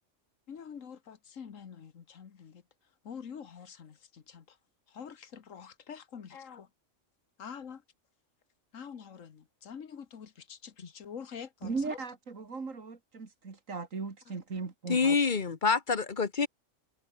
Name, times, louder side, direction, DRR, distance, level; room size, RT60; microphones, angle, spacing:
voice 1, 0.5-2.6 3.0-4.5 4.9-6.7 7.4-7.8 8.7-12.0, left 7 dB, 85° left, 1.7 m, -46 dB
voice 2, 11.6-15.1, right 4 dB, 80° right, 2.9 m, -37 dB
voice 3, 14.9-16.5, left 5 dB, 40° left, 1.1 m, -26 dB
open air
omnidirectional pair, 1.3 m